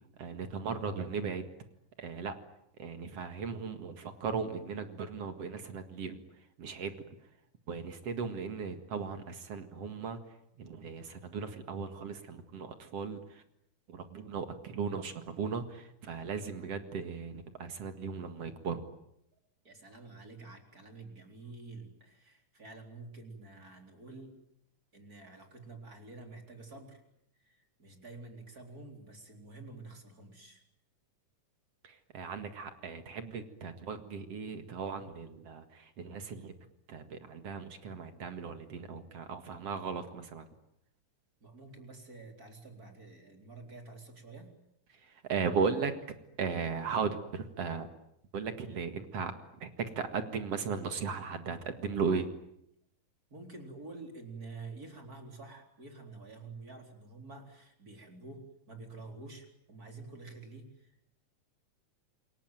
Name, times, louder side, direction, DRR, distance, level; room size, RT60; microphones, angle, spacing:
voice 1, 0.2-1.5 2.0-2.4 2.8-6.2 6.6-6.9 7.7-13.4 13.9-18.8 31.8-36.5 36.9-40.5 44.9-45.9 46.4-47.9 48.3-49.3 49.6-52.3, right 5 dB, 55° right, 8 dB, 2.7 m, -37 dB
voice 2, 19.6-24.4 24.9-27.0 27.4-30.6 41.4-44.5 53.3-61.1, right 3 dB, 25° right, 4 dB, 4.4 m, -49 dB
28.0 x 22.5 x 9.1 m, 0.77 s
omnidirectional pair, 3.7 m